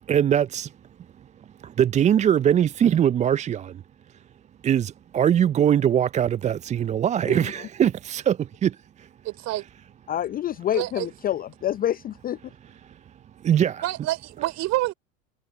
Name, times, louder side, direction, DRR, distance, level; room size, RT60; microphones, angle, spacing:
voice 1, 0.1-0.7 1.6-3.8 4.6-9.1 12.8-13.0 13.4-13.8, right 9 dB, 15° right, 0.6 m, -22 dB
voice 2, 7.3-7.7 10.1-12.5, left 11 dB, 20° left, 0.7 m, -28 dB
voice 3, 9.2-9.7 10.7-11.1 13.8-14.9, right 16 dB, 40° right, 3.7 m, -27 dB
figure-of-eight pair, 90°, 41 cm